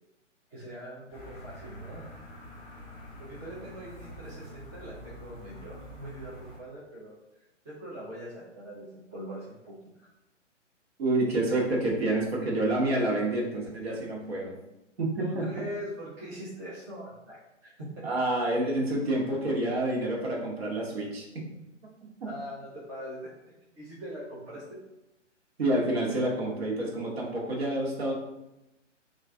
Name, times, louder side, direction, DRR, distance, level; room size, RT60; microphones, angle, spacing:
voice 1, 0.5-2.0 3.2-7.1 7.6-10.1 15.2-18.0 22.2-23.3 23.8-24.8, equal, 15° right, -9 dB, 0.5 m, -42 dB
sound 1, 1.1-6.6, equal, 20° left, 1.0 m, -46 dB
voice 2, 11.0-14.5 15.0-15.4 18.0-21.4 25.6-28.1, right 1 dB, 55° right, -2 dB, 1.1 m, -28 dB
3.0 x 2.5 x 3.4 m, 0.92 s
figure-of-eight pair, 125°, 37 cm